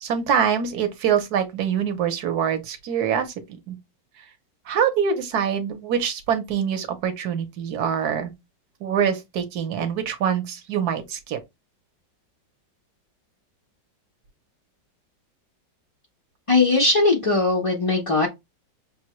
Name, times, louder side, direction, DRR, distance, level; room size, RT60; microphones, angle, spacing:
voice 1, 0.0-3.3 3.7-3.8 4.7-8.3 8.8-11.4, right 8 dB, 65° right, 1.2 m, -24 dB
voice 2, 16.5-18.3, left 3 dB, 55° left, 0.3 m, -19 dB
6.0 x 2.2 x 3.0 m
omnidirectional pair, 2.0 m